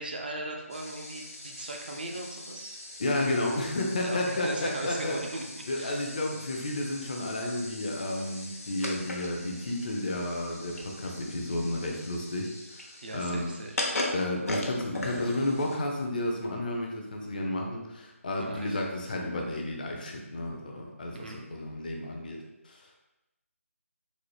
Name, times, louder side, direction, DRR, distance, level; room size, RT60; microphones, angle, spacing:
voice 1, 0.0-2.8 4.0-5.4 5.8-6.0 13.0-13.8 18.4-18.8 21.1-21.4, right 2 dB, 40° right, 1 dB, 0.4 m, -38 dB
sound 1, 0.7-16.1, left 1 dB, 80° left, 0.8 m, -40 dB
voice 2, 3.0-5.1 5.7-13.5 14.1-22.9, left 1 dB, 35° left, 1 dB, 0.5 m, -32 dB
3.9 x 2.0 x 3.2 m, 0.94 s
figure-of-eight pair, 165°, 8 cm